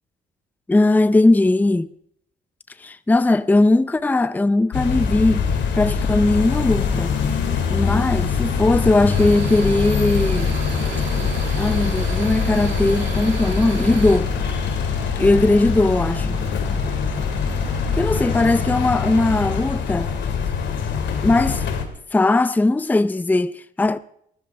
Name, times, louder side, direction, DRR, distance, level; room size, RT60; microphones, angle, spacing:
voice 1, 0.7-1.9 2.8-5.5 5.8-7.1 7.7-10.5 11.6-14.3 15.2-16.4 17.9-20.1 21.2-21.6 22.1-24.0, left 2 dB, 10° left, 0.5 m, -19 dB
sound 1, 4.7-21.8, left 6 dB, 80° left, 2.4 m, -23 dB
sound 2, 6.2-19.7, right 2 dB, 35° right, 7.5 m, -38 dB
sound 3, 9.1-14.2, right 8 dB, 90° right, 1.9 m, -34 dB
22.5 x 14.0 x 3.4 m
cardioid pair, 110°, 19 cm